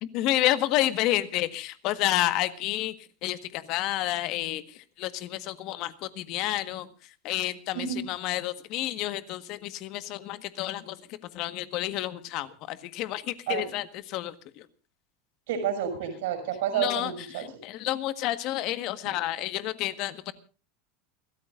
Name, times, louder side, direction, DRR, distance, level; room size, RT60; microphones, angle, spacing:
voice 1, 0.0-2.9 3.2-14.7 16.7-20.3, left 15 dB, 50° left, 12 dB, 1.5 m, -30 dB
voice 2, 15.5-17.4, right 9 dB, 80° right, 7 dB, 5.8 m, -29 dB
29.0 x 13.5 x 2.5 m, 0.36 s
supercardioid pair, 150°, 0 cm